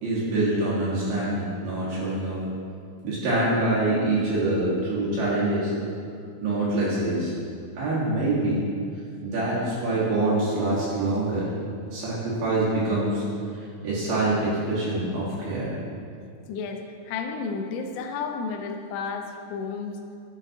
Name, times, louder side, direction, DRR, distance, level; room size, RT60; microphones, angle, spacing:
voice 1, 0.0-2.4 3.0-5.7 6.4-7.3 7.8-8.7 9.2-11.4 11.9-13.2 13.5-15.7, right 2 dB, 65° right, -9 dB, 3.0 m, -25 dB
voice 2, 16.5-20.0, left 5 dB, 85° left, 4 dB, 2.7 m, -32 dB
10.5 x 5.7 x 2.7 m, 2.3 s
omnidirectional pair, 4.8 m